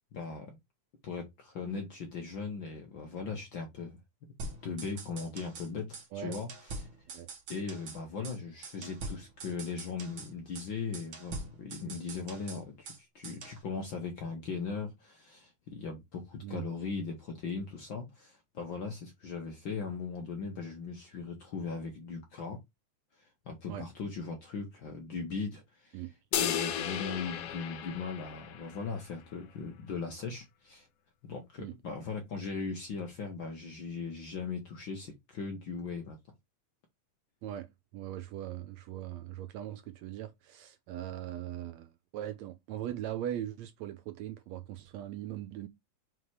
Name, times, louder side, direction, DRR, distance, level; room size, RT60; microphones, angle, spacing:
voice 1, 0.1-0.6 1.0-4.0 4.6-6.9 7.5-22.6 23.2-26.0 26.4-30.9 31.2-36.2, left 4 dB, 55° left, 1.4 m, -39 dB
sound 1, 4.4-5.7 5.9-6.1 6.3-8.0 8.2-8.4 8.6-10.3 10.5-10.7 10.9-13.0 13.2-13.6, right 3 dB, 45° right, 2.0 m, -43 dB
sound 2, 26.3-28.9, left 10 dB, 75° left, 1.4 m, -34 dB
voice 2, 37.4-45.7, right 12 dB, 80° right, 1.7 m, -40 dB
5.7 x 3.6 x 4.8 m
omnidirectional pair, 3.5 m